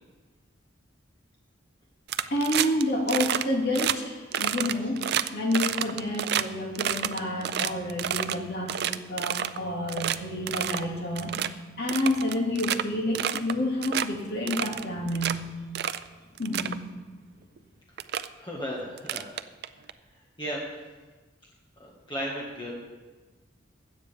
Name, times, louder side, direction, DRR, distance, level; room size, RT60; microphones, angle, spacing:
sound 1, 2.1-2.8 3.1-3.4 3.7-4.0 4.3-6.4 6.8-8.4 8.7-9.6 9.9-10.2 10.5-10.8 11.2-11.5 11.9-12.8 13.2-13.5 13.8-14.1 14.5-15.3 15.8-16.0 16.4-16.8 17.6-17.7 18.0-18.3 19.0-19.9, right 10 dB, 55° right, 0.4 m, -29 dB
voice 1, 2.3-11.3 11.8-15.4 16.4-16.8, left 1 dB, 55° left, -2 dB, 2.4 m, -29 dB
voice 2, 18.4-19.2 20.4-20.6 21.8-22.7, equal, 25° left, -3 dB, 1.7 m, -34 dB
16.0 x 10.0 x 3.5 m, 1.3 s
head